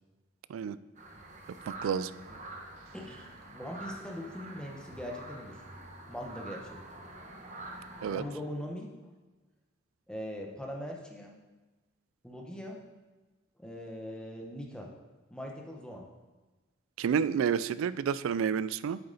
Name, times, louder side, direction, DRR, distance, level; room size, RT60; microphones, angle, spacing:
sound 1, 0.9-8.2, right 2 dB, 35° right, 1.0 m, -46 dB
voice 1, 2.9-3.3 3.5-5.6 6.1-6.8 8.0-8.9 10.1-11.3 12.2-12.8 13.6-14.9 15.3-16.0, equal, 5° left, 0 dB, 0.9 m, -41 dB
voice 2, 17.0-19.0, right 7 dB, 80° right, 17 dB, 0.3 m, -29 dB
8.2 x 6.7 x 3.9 m, 1.2 s
head